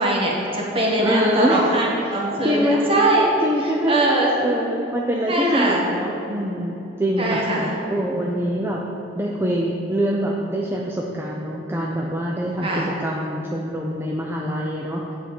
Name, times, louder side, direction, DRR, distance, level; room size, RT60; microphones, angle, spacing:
voice 1, 0.0-3.3 3.9-4.3 5.3-5.8 7.2-7.7 8.2-8.4 12.6-12.9, right 1 dB, 30° right, -2 dB, 1.6 m, -21 dB
voice 2, 1.0-1.7 2.4-2.9 3.4-8.8 9.1-15.0, equal, 15° right, -2 dB, 0.6 m, -24 dB
8.7 x 4.5 x 7.0 m, 3.0 s
head